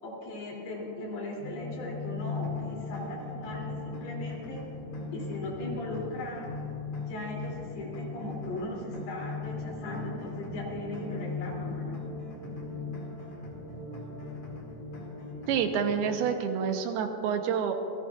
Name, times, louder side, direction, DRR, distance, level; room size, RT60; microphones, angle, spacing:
voice 1, 0.0-4.6 5.1-6.5 7.1-12.0, left 1 dB, 85° left, -3 dB, 5.0 m, -38 dB
sound 1, 1.4-16.3, left 3 dB, 35° left, 3.7 m, -39 dB
sound 2, 2.0-16.2, left 1 dB, 55° left, 3.5 m, -47 dB
voice 2, 15.5-17.7, right 7 dB, 80° right, 5 dB, 2.9 m, -28 dB
26.5 x 17.0 x 2.4 m, 3.0 s
omnidirectional pair, 4.5 m